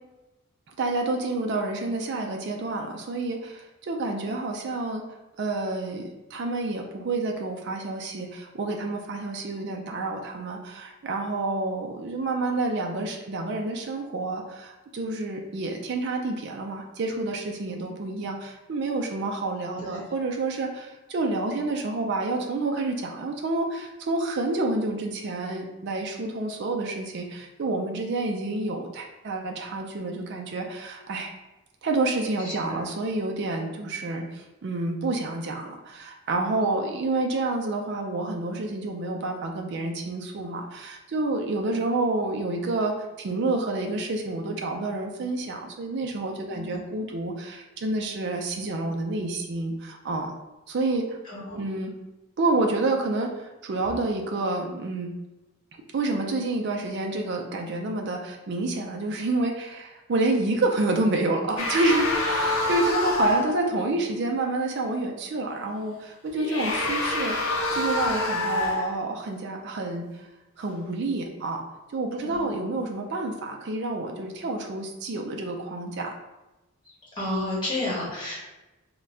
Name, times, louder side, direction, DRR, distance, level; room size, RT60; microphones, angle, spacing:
voice 1, 0.8-5.0 5.4-31.3 31.8-50.3 50.7-51.2 51.5-51.9 52.4-55.1 55.9-70.3 70.6-71.6 71.9-76.1, right 2 dB, 50° right, 2 dB, 0.4 m, -29 dB
voice 2, 32.4-32.8 46.5-46.8 51.2-51.6 72.2-72.5 77.1-78.4, left 2 dB, 20° left, -6 dB, 1.0 m, -31 dB
sound 1, 61.6-63.7 66.3-69.0, left 2 dB, 70° left, 0.6 m, -26 dB
3.8 x 2.1 x 3.4 m, 1.0 s
head